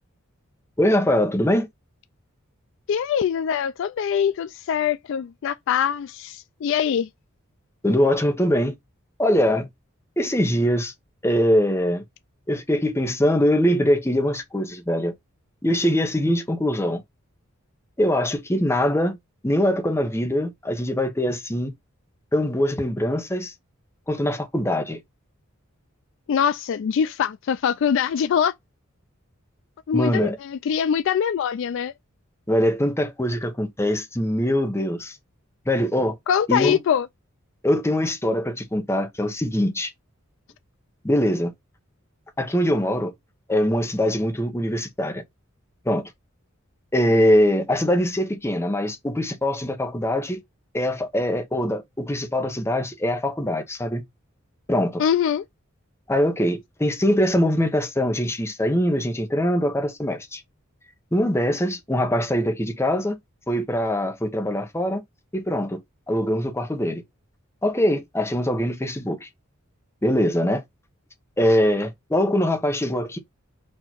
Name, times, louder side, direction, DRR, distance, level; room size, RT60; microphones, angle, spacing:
voice 1, 0.8-1.7 7.8-8.7 9.2-9.7 10.2-10.9 11.2-12.0 12.5-15.1 15.6-17.0 18.0-19.2 19.4-21.7 22.3-23.5 24.1-25.0 29.9-30.4 32.5-35.2 35.7-36.2 36.5-36.8 37.6-39.9 41.0-41.5 42.4-43.1 43.5-45.2 45.8-46.1 46.9-50.4 50.7-54.0 54.7-55.0 56.1-60.4 61.1-63.2 63.5-65.0 65.3-65.8 66.1-67.0 67.6-69.3 70.0-70.6 71.4-73.2, equal, 15° left, 0.9 m, -22 dB
voice 2, 2.9-7.1 26.3-28.5 29.9-31.9 36.3-37.1 55.0-55.4, left 8 dB, 60° left, 0.3 m, -23 dB
4.3 x 2.8 x 4.4 m
head